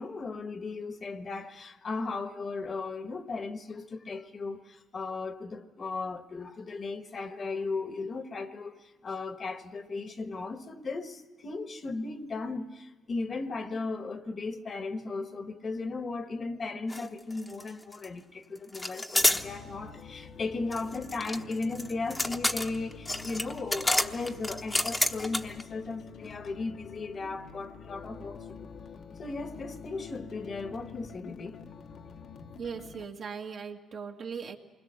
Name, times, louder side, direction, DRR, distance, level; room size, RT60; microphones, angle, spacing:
voice 1, 0.0-28.7 29.2-31.6, left 3 dB, 45° left, 1.3 m, -36 dB
sound 1, 16.9-17.1 17.3-18.1 18.7-19.4 20.7-25.6, left 1 dB, 15° left, 1.0 m, -29 dB
sound 2, 19.2-33.0, left 6 dB, 65° left, 1.2 m, -47 dB
voice 2, 32.6-34.6, right 6 dB, 55° right, 1.9 m, -39 dB
27.5 x 21.0 x 6.7 m
cardioid pair, 90°, 0 cm